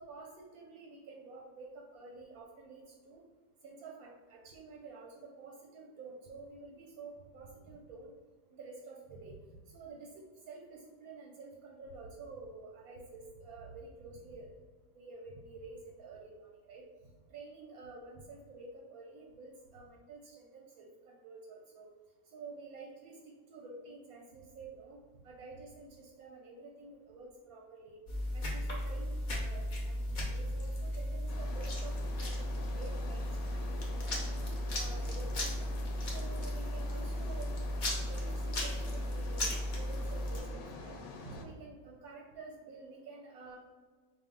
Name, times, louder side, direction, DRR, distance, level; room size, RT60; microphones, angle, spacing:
voice 1, 0.0-3.2 3.6-8.1 8.5-9.4 9.7-10.1 10.5-14.5 15.0-21.9 22.3-28.0 28.3-34.4 34.7-35.8 36.0-37.5 37.9-43.6, right 3 dB, 65° right, -1 dB, 0.9 m, -50 dB
sound 1, 28.1-40.4, left 1 dB, 55° left, 0.5 m, -35 dB
sound 2, 31.3-41.5, left 3 dB, 75° left, 1.3 m, -47 dB
5.0 x 2.4 x 3.7 m, 1.5 s
omnidirectional pair, 1.9 m